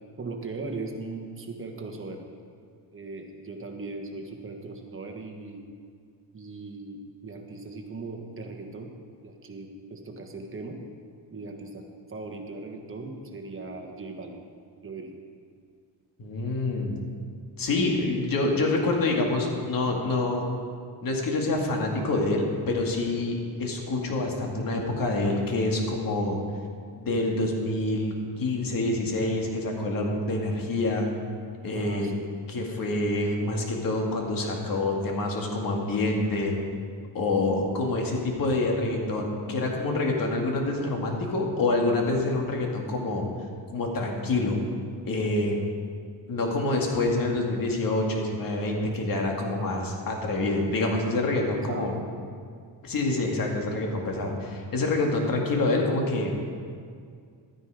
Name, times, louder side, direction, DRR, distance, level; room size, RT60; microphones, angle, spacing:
voice 1, 0.2-2.2 2.9-5.6 6.3-8.9 9.2-10.8 11.3-11.8 12.1-14.4 14.8-15.1 31.7-32.1 46.0-46.1 51.6-51.9 52.3-52.4, right 3 dB, 30° right, 3 dB, 1.5 m, -38 dB
voice 2, 16.2-17.0 17.6-20.5 21.0-26.4 26.9-31.1 31.6-32.1 32.5-36.6 37.1-43.2 43.7-44.6 45.1-45.6 46.3-52.0 52.8-56.3, left 2 dB, 50° left, 0 dB, 2.2 m, -27 dB
13.0 x 9.6 x 5.0 m, 2.2 s
cardioid pair, 120°, 43 cm